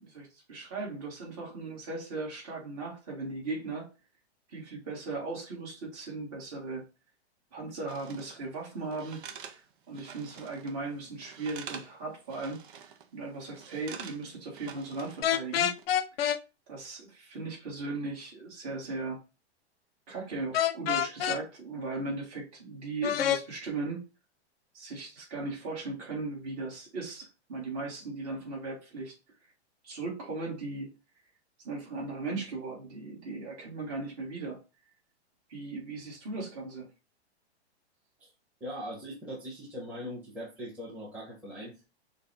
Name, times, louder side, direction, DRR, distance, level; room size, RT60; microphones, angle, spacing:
voice 1, 0.0-3.9 4.5-6.8 7.5-9.2 9.5-9.6 9.9-12.8 13.1-15.8 16.7-19.2 20.1-24.1 24.7-29.1 29.8-30.9 31.6-34.6 35.5-36.9, right 3 dB, 35° right, -3 dB, 2.0 m, -37 dB
sound 1, 7.9-8.4 8.9-10.8 11.0-12.0 12.3-13.1 13.5-15.3 15.6-15.9, right 7 dB, 50° right, 0.6 m, -46 dB
sound 2, 15.2-16.4 20.5-21.4 23.0-23.4, left 10 dB, 65° left, 0.5 m, -27 dB
voice 2, 38.6-41.8, equal, 5° right, -8 dB, 1.2 m, -40 dB
6.1 x 2.3 x 2.8 m, 0.30 s
hypercardioid pair, 165°, 33 cm